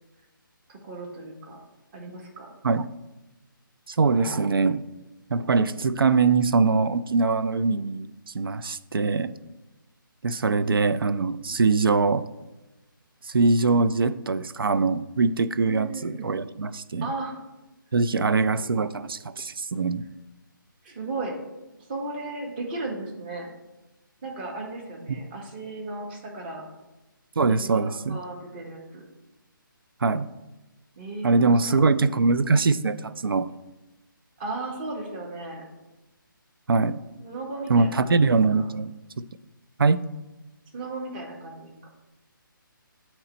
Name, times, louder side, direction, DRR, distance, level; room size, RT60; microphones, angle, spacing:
voice 1, 0.7-1.6 1.9-2.5 15.7-16.4 17.0-17.4 20.8-21.4 21.9-23.5 24.2-26.6 27.4-29.0 31.0-31.9 34.4-35.7 37.2-38.7 40.7-41.7, right 2 dB, 25° right, 0 dB, 1.0 m, -35 dB
voice 2, 3.9-4.8 5.3-9.4 10.2-12.3 13.2-17.1 17.9-20.1 25.1-25.2 27.4-28.2 30.0-30.3 31.2-33.5 36.7-37.0 37.7-39.2 39.8-40.0, right 4 dB, 85° right, 13 dB, 0.4 m, -23 dB
8.4 x 3.0 x 4.2 m, 1.0 s
figure-of-eight pair, 155°, 12 cm